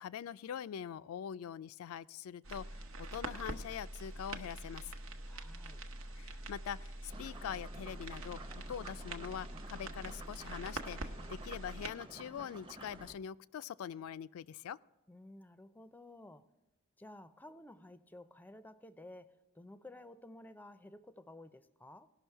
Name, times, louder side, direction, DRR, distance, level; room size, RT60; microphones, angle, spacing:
voice 1, 0.0-5.0 6.2-8.4 8.7-14.8, left 8 dB, 80° left, 17 dB, 0.3 m, -43 dB
sound 1, 2.4-11.9, right 2 dB, 75° right, 0.9 m, -45 dB
voice 2, 5.3-5.8 15.1-16.5 17.0-22.1, left 1 dB, 10° left, 12 dB, 0.4 m, -54 dB
sound 2, 7.1-13.2, right 2 dB, 25° right, 0.8 m, -52 dB
18.0 x 6.1 x 4.5 m, 1.0 s
head